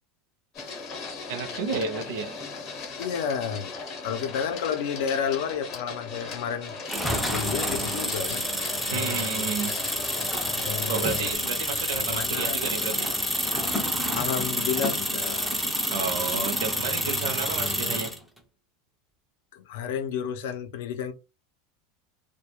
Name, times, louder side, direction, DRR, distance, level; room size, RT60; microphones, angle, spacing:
Printer, 0.5-11.4, left 4 dB, 30° left, 0.7 m, -38 dB
voice 1, 1.3-2.3 8.9-9.8 10.9-13.1 15.9-18.1, right 5 dB, 70° right, 0.5 m, -31 dB
voice 2, 3.0-3.7 4.0-6.7 7.3-8.5 8.9-9.3 10.4-11.3 12.0-13.2 14.1-15.6 19.5-21.1, left 7 dB, 65° left, 0.4 m, -31 dB
sound 1, 6.9-18.2, equal, ahead, 0.4 m, -28 dB
2.3 x 2.1 x 2.9 m
supercardioid pair, 180°, 0 cm